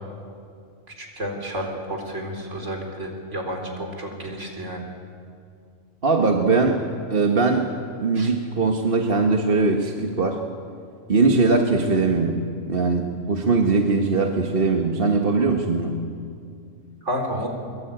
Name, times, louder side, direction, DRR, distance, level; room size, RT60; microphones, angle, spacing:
voice 1, 0.9-4.9 8.1-8.3 17.0-17.5, equal, 60° right, 2 dB, 4.4 m, -31 dB
voice 2, 6.0-6.8 7.1-7.7 8.0-10.4 11.1-16.0, right 3 dB, 45° right, 3 dB, 1.7 m, -21 dB
23.0 x 23.0 x 8.9 m, 2.3 s
omnidirectional pair, 1.4 m